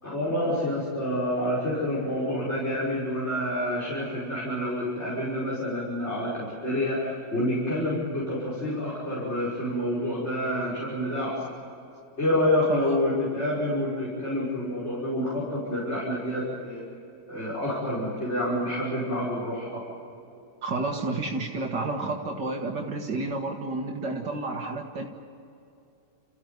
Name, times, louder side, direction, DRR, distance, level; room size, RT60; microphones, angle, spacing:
voice 1, 0.0-11.4 12.2-16.8 17.3-19.8, left 1 dB, 40° left, -6 dB, 6.1 m, -28 dB
voice 2, 20.6-25.1, right 3 dB, 75° right, 1 dB, 2.3 m, -30 dB
29.0 x 15.5 x 9.4 m, 2.7 s
omnidirectional pair, 1.9 m